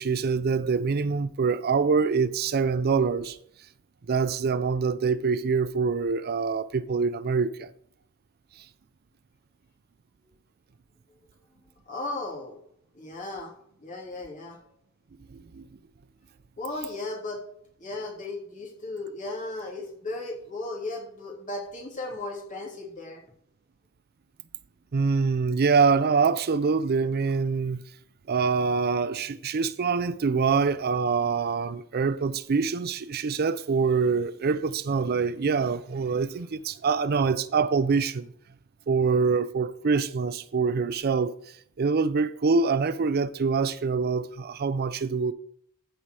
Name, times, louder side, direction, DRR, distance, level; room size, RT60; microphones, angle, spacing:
voice 1, 0.0-3.4 4.1-7.7 15.3-15.6 24.9-27.8 28.3-38.3 38.9-41.3 41.8-45.3, right 5 dB, 50° right, 0.5 m, -25 dB
voice 2, 11.8-12.6 12.9-13.5 13.8-14.6 16.6-17.4 17.8-23.2, left 2 dB, 40° left, 3.2 m, -36 dB
15.0 x 5.5 x 4.8 m
head